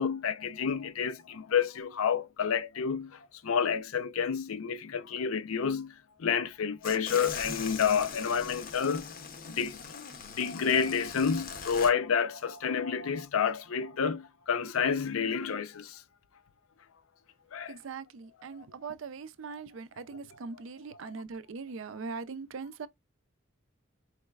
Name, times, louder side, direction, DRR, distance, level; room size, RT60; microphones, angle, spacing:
voice 1, 0.0-5.9 6.2-9.1 9.4-10.0 10.4-16.0 17.5-17.7, left 6 dB, 85° left, 0.5 m, -29 dB
sound 1, 6.8-11.9, left 6 dB, 45° left, 0.6 m, -41 dB
voice 2, 17.7-22.9, right 4 dB, 70° right, 0.4 m, -41 dB
4.8 x 3.1 x 2.2 m
head